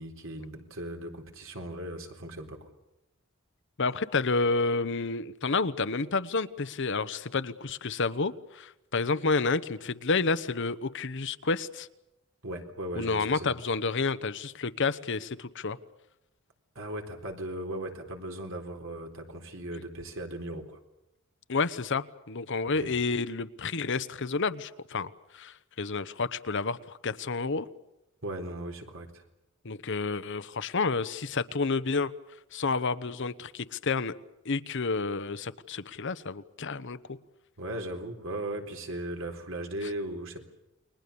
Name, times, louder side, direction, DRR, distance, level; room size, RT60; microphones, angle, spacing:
voice 1, 0.0-2.7 12.4-13.5 16.7-20.8 22.6-22.9 28.2-29.2 37.6-40.4, right 1 dB, 65° right, 4 dB, 4.0 m, -38 dB
voice 2, 3.8-11.9 13.0-15.8 21.5-27.7 29.6-32.1 32.5-34.1 34.4-37.2, left 4 dB, 60° left, 13 dB, 1.0 m, -30 dB
29.5 x 22.0 x 7.0 m, 0.92 s
head